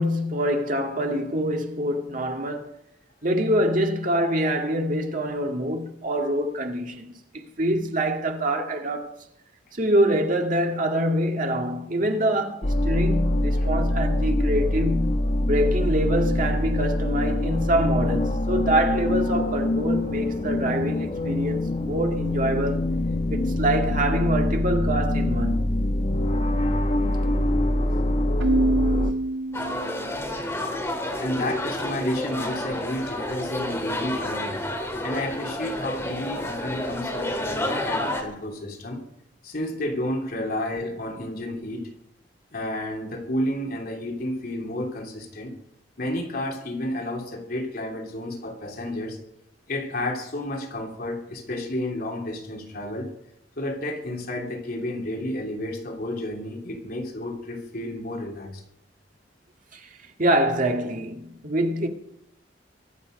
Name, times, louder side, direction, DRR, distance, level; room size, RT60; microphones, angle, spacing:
voice 1, 0.0-2.7 3.2-9.1 9.7-15.2 15.5-22.8 23.3-25.6 40.3-40.4 59.7-59.9 60.2-61.9, right 1 dB, 50° right, 1.9 m, -25 dB
sound 1, 12.6-29.1, left 1 dB, 40° left, 1.0 m, -24 dB
Keyboard (musical), 28.4-30.2, right 2 dB, 75° right, 0.6 m, -25 dB
sound 2, 29.5-38.2, left 1 dB, 15° left, 2.8 m, -30 dB
voice 2, 31.2-34.6 35.0-39.0 39.4-41.8 42.5-45.5 46.0-49.2 49.7-53.1 53.6-58.6, left 1 dB, 55° left, 3.1 m, -31 dB
24.0 x 8.6 x 5.3 m
head